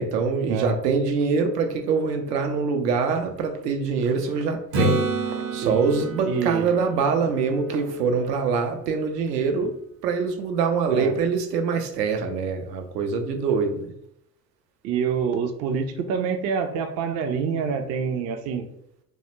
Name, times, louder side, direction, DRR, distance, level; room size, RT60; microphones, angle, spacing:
voice 1, 0.0-9.8 10.0-13.9, right 5 dB, 80° right, 5 dB, 0.6 m, -24 dB
Acoustic guitar / Strum, 4.7-8.5 13.3-13.4, right 2 dB, 60° right, 0.8 m, -29 dB
voice 2, 6.3-6.7 10.9-11.1 14.8-18.7, right 6 dB, 35° right, 6 dB, 0.4 m, -26 dB
2.3 x 2.0 x 2.9 m, 0.73 s
hypercardioid pair, 70°, 49 cm